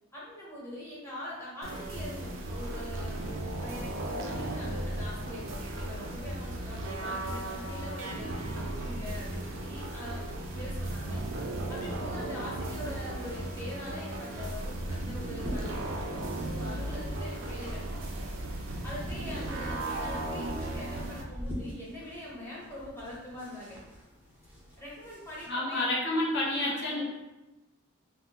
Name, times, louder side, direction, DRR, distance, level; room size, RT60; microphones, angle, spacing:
voice 1, 0.1-3.2 3.6-11.2 11.7-15.8 16.2-18.3 18.8-23.8 24.8-25.9 26.6-27.0, left 1 dB, 10° left, -7 dB, 0.9 m, -43 dB
sound 1, 1.6-21.2, right 1 dB, 65° right, 0.4 m, -36 dB
sound 2, 11.9-18.3 18.6-25.5, equal, 10° right, 0.5 m, -46 dB
voice 2, 25.5-27.1, left 1 dB, 50° left, -3 dB, 0.7 m, -29 dB
3.4 x 2.0 x 2.8 m, 1.0 s
head